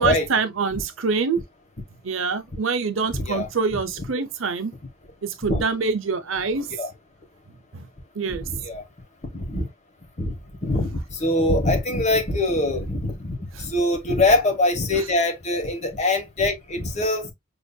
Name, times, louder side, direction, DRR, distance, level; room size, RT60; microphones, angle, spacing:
voice 1, 0.0-1.4 2.0-4.7 5.2-6.7 7.7-7.9 8.1-8.5 13.6-13.7, right 5 dB, 70° right, 0.7 m, -25 dB
voice 2, 3.1-3.5 5.5-5.6 6.8-6.9 8.3-8.8 9.3-9.7 10.2-10.3 10.6-17.3, left 2 dB, 35° left, 1.1 m, -23 dB
5.4 x 2.7 x 2.2 m
head